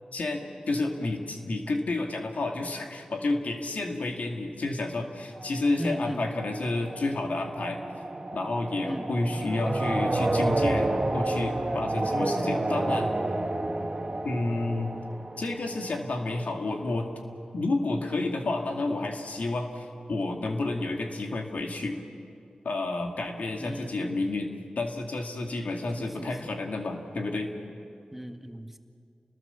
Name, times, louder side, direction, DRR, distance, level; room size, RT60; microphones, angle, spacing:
voice 1, 0.1-7.8 8.3-13.1 14.2-14.9 15.4-17.1 17.5-22.0 22.6-27.5, left 2 dB, 80° left, 2 dB, 2.4 m, -30 dB
sound 1, 5.4-16.2, right 2 dB, 35° right, 2.1 m, -30 dB
voice 2, 5.8-6.3 8.8-9.9 23.6-24.3 26.0-26.5 28.1-28.8, equal, 10° right, 5 dB, 1.9 m, -38 dB
29.5 x 20.5 x 7.2 m, 2.4 s
cardioid pair, 45°, 3 cm